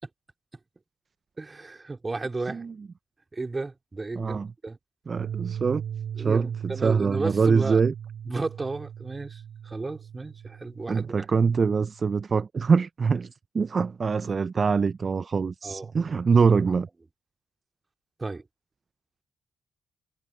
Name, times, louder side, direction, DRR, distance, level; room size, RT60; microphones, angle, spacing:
voice 1, 1.4-2.6 3.3-4.8 6.2-7.8 8.3-11.3 15.6-15.9 18.2-18.4, right 3 dB, 30° right, 3.6 m, -33 dB
voice 2, 4.2-4.5 5.1-5.8 6.2-7.9 10.9-13.3 13.5-16.9, right 5 dB, 45° right, 0.9 m, -24 dB
sound 1, 5.2-12.2, right 9 dB, 65° right, 6.4 m, -38 dB
hypercardioid pair, 40°, 0 cm